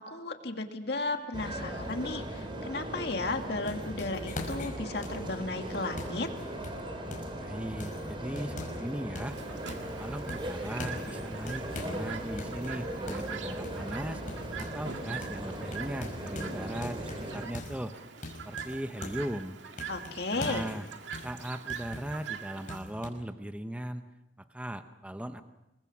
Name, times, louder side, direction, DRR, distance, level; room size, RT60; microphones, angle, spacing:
voice 1, 0.1-6.3 19.9-20.7, left 2 dB, 60° left, 5 dB, 2.1 m, -34 dB
sound 1, 1.3-17.5, right 1 dB, 30° right, 3.8 m, -38 dB
sound 2, 3.2-7.4 7.8-8.9 9.1-10.0 10.3-12.0 12.4-15.0 15.2-15.4 15.7-19.3 19.8-22.2 22.7-23.1, left 2 dB, 45° left, 5.1 m, -43 dB
voice 2, 7.4-9.4 10.0-14.2 14.6-18.0 18.4-19.6 20.3-20.9 21.2-24.0 24.4-25.4, equal, 5° right, 8 dB, 0.8 m, -38 dB
Chirp tweet, 9.2-22.8, right 7 dB, 90° right, 2.0 m, -44 dB
26.5 x 22.5 x 6.1 m, 0.95 s
head